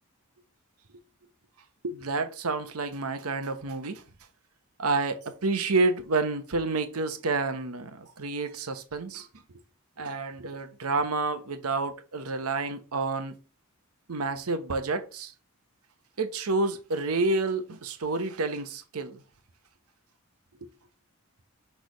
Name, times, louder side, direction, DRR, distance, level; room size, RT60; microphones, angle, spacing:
voice 1, 1.8-4.0 4.8-9.3 10.0-13.3 14.1-15.3 16.2-19.2, right 3 dB, 80° right, 0.9 m, -29 dB
6.2 x 3.4 x 5.1 m
head